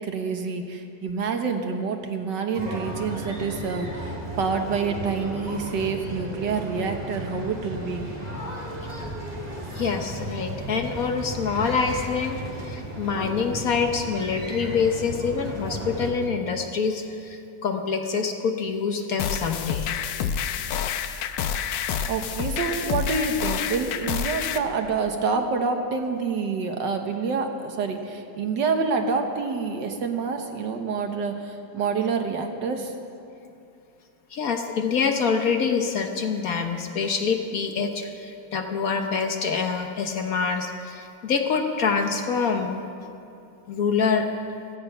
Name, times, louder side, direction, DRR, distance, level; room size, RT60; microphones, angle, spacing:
voice 1, 0.0-8.1 22.1-32.9, right 5 dB, 70° right, 5 dB, 1.8 m, -27 dB
sound 1, 2.5-16.1, right 1 dB, 20° right, 2.2 m, -35 dB
voice 2, 9.7-12.4 12.6-19.9 34.3-42.8 43.7-44.3, left 5 dB, 55° left, 4 dB, 1.3 m, -26 dB
sound 2, 19.2-24.6, left 8 dB, 85° left, 1.4 m, -28 dB
16.5 x 14.0 x 5.6 m, 2.6 s
omnidirectional pair, 2.0 m